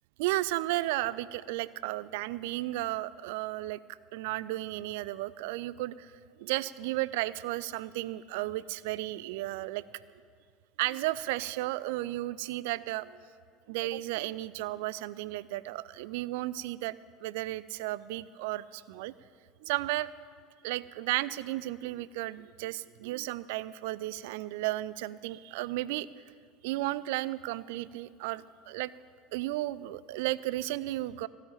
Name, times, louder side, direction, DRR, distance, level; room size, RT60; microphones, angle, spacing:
voice 1, 0.2-3.8 4.1-6.1 6.4-9.8 10.8-13.2 13.7-19.1 19.6-20.1 20.6-26.1 26.6-28.9 29.3-31.3, right 17 dB, 60° right, 18 dB, 0.3 m, -34 dB
16.0 x 5.7 x 8.9 m, 2.2 s
figure-of-eight pair, 70°, 0 cm